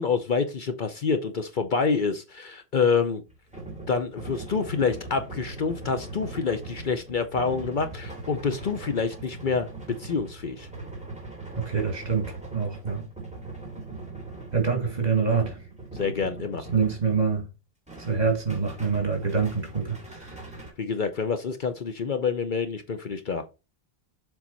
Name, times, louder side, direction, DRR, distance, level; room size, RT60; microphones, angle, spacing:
voice 1, 0.0-3.2 3.9-9.7 10.0-10.7 15.9-16.6 20.8-23.4, left 5 dB, 55° left, 0.8 m, -27 dB
sound 1, 3.3-17.5 17.9-20.7, right 2 dB, 5° right, 2.4 m, -41 dB
voice 2, 11.6-13.1 14.5-15.6 16.7-17.5 18.0-20.4, right 5 dB, 40° right, 2.3 m, -26 dB
7.3 x 3.9 x 4.0 m
omnidirectional pair, 1.1 m